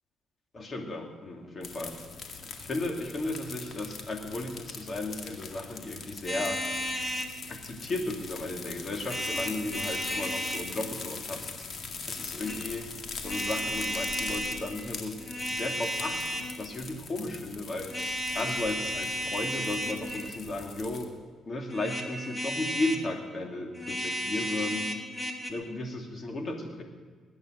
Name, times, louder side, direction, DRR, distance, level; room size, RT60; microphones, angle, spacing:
voice 1, 0.5-2.0 2.6-6.6 7.5-11.7 12.1-12.9 13.2-15.2 15.5-17.9 18.3-21.1 21.5-24.9 25.5-26.8, left 2 dB, 40° left, 2 dB, 2.7 m, -35 dB
sound 1, 1.6-21.0, left 4 dB, 55° left, 2.1 m, -42 dB
sound 2, 6.3-7.3 9.0-10.7 12.2-12.6 13.2-14.6 15.2-16.6 17.9-20.3 21.7-23.1 23.7-25.5, equal, 10° left, 1.9 m, -33 dB
20.5 x 9.3 x 6.4 m, 1.5 s
cardioid pair, 90°, 0 cm